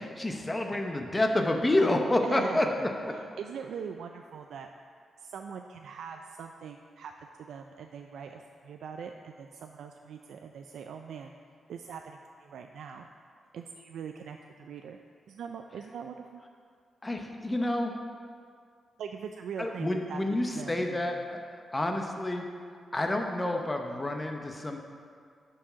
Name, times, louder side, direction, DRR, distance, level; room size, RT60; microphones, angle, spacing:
voice 1, 0.0-2.9 17.0-17.9 19.6-22.4 22.9-24.8, left 1 dB, 15° left, 3 dB, 0.8 m, -29 dB
voice 2, 2.2-4.7 5.2-11.3 11.7-13.1 13.5-15.0 15.3-16.4 19.0-21.0, right 6 dB, 85° right, 4 dB, 0.3 m, -42 dB
8.6 x 4.7 x 5.7 m, 2.2 s
wide cardioid pair, 125°, 0 cm